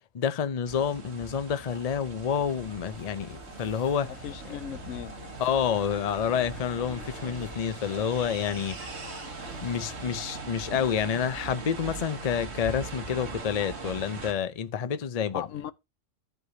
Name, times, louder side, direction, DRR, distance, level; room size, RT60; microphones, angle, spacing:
voice 1, 0.1-4.6 5.4-8.8 9.6-15.5, left 7 dB, 40° left, 0.6 m, -29 dB
sound 1, 0.7-14.3, right 3 dB, 60° right, 1.6 m, -41 dB
sound 2, 2.4-10.1, left 2 dB, 60° left, 2.3 m, -47 dB
voice 2, 4.2-5.1 15.3-15.7, left 10 dB, 80° left, 1.0 m, -37 dB
14.5 x 5.0 x 2.7 m
omnidirectional pair, 1.3 m